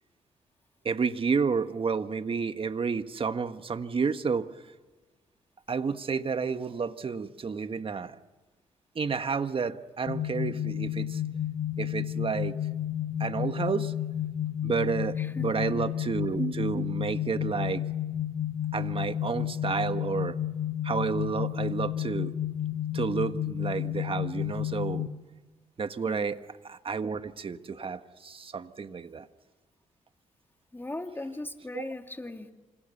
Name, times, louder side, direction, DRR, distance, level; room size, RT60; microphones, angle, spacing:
voice 1, 0.8-4.5 5.7-8.2 8.9-11.2 11.8-12.6 13.2-13.9 14.6-17.8 18.7-20.4 20.8-22.3 22.9-25.1 25.8-29.3 31.7-31.9, right 5 dB, 45° right, 9 dB, 1.6 m, -30 dB
sound 1, 10.1-25.1, left 11 dB, 55° left, 2.0 m, -31 dB
voice 2, 15.2-15.5 26.0-26.3 30.7-32.5, left 2 dB, 15° left, 6 dB, 2.5 m, -38 dB
28.5 x 26.5 x 6.9 m, 1.2 s
supercardioid pair, 65°, 13 cm